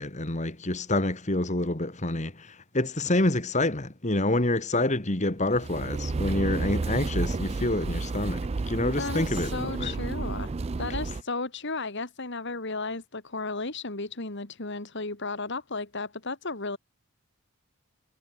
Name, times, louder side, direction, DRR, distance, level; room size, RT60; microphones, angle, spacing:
voice 1, 0.0-9.9, left 1 dB, 30° left, 2.1 m, -27 dB
sound 1, 5.4-11.2, right 3 dB, 30° right, 0.4 m, -31 dB
voice 2, 9.0-10.5 10.8-16.8, left 3 dB, 55° left, 2.2 m, -34 dB
head